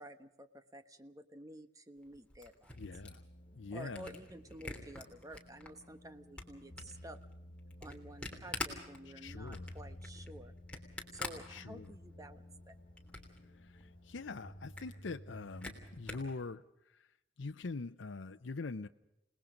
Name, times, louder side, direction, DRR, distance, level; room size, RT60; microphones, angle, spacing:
voice 1, 0.0-2.7 3.7-7.2 7.8-10.5 11.1-12.7, right 1 dB, 20° right, 9 dB, 1.2 m, -51 dB
Camera, 2.0-5.7 6.1-12.2 12.5-13.4 13.8-13.9 14.1-14.2 14.5-16.3, left 2 dB, 5° left, 3.2 m, -46 dB
sound 1, 2.7-16.3, left 1 dB, 55° left, 2.8 m, -54 dB
voice 2, 2.8-3.2 3.5-4.2 9.0-9.8 11.5-11.9 13.6-16.6 16.9-17.1 17.4-18.9, left 3 dB, 90° left, 7 dB, 0.7 m, -44 dB
29.0 x 19.5 x 5.2 m, 0.89 s
head